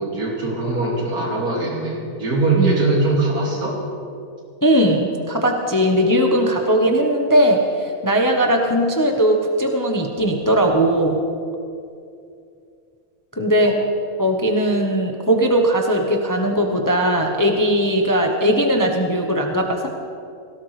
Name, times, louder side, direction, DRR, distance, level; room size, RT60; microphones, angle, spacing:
voice 1, 0.0-3.8 13.6-13.7, right 3 dB, 75° right, -3 dB, 2.9 m, -21 dB
voice 2, 4.6-11.2 13.4-13.7 14.2-19.9, equal, 15° left, 2 dB, 0.8 m, -19 dB
17.5 x 16.5 x 3.3 m, 2.4 s
omnidirectional pair, 1.6 m